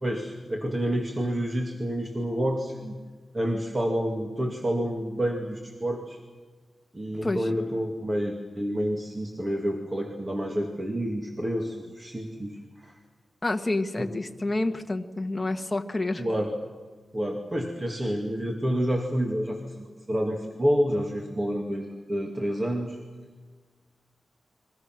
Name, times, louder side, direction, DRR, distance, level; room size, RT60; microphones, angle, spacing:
voice 1, 0.0-2.9 3.3-6.2 6.9-12.9 14.0-14.1 16.2-16.5 17.1-23.0, equal, 25° right, 1 dB, 2.2 m, -29 dB
voice 2, 13.4-16.2, left 2 dB, 20° left, 5 dB, 1.4 m, -28 dB
30.0 x 23.0 x 6.1 m, 1.4 s
wide cardioid pair, 155°, 0 cm